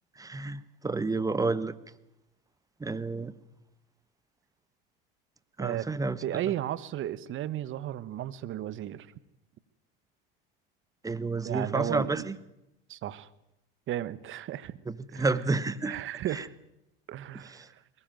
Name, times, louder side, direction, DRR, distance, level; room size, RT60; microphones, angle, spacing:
voice 1, 0.2-1.7 2.8-3.3 5.6-6.2 11.0-12.3 14.9-16.0 16.3-16.4 17.5-17.6, right 3 dB, 10° right, 16 dB, 1.3 m, -30 dB
voice 2, 6.2-9.1 11.4-12.3 12.9-13.3 13.9-14.8 15.1-15.3 15.8-16.5 17.1-17.7, right 12 dB, 45° right, 17 dB, 1.4 m, -34 dB
22.5 x 19.0 x 9.2 m, 0.88 s
supercardioid pair, 100°, 29 cm